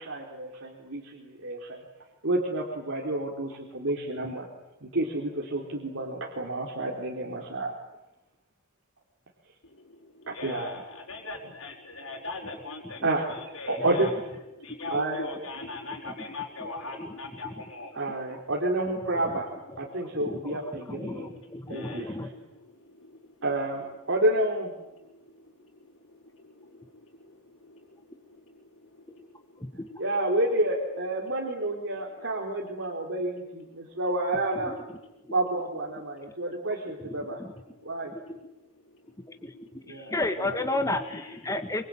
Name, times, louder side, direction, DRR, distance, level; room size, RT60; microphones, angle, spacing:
voice 1, 0.0-1.8 2.2-4.5 4.8-7.7 10.3-10.7 13.0-13.2 13.7-14.1 14.9-15.2 17.9-19.5 19.8-21.4 21.7-22.1 23.4-24.7 30.0-34.7 35.3-37.4 37.8-38.1 39.8-40.6, right 1 dB, 70° right, -1 dB, 3.6 m, -29 dB
voice 2, 9.6-13.0 13.3-14.1 14.6-18.0 20.1-20.2 21.3-22.1 22.4-23.3 25.0-27.8 28.8-29.8 33.9-34.0 38.8-39.4 39.7-40.1 41.0-41.4, left 3 dB, 80° left, -5 dB, 5.2 m, -42 dB
voice 3, 19.1-19.4 19.7-19.8 20.1-22.4 29.6-29.9 34.6-34.8 37.0-37.5 39.4-41.8, left 2 dB, 15° left, 6 dB, 1.8 m, -33 dB
25.5 x 25.0 x 8.9 m, 0.96 s
head